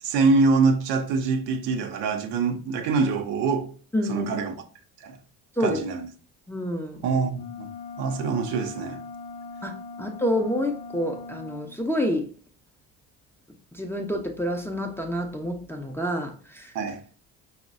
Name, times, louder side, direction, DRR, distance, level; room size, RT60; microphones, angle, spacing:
voice 1, 0.0-3.7 4.1-4.5 5.0-5.2 5.6-6.0 7.0-7.7 8.0-9.0 16.7-17.0, right 4 dB, 65° right, 0.7 m, -24 dB
voice 2, 3.9-4.3 5.6-5.8 6.5-7.1 9.6-12.3 13.7-16.7, equal, 5° left, 0.5 m, -28 dB
sound 1, 7.3-11.7, left 4 dB, 60° left, 0.6 m, -40 dB
5.1 x 2.1 x 2.5 m
hypercardioid pair, 60°, 44 cm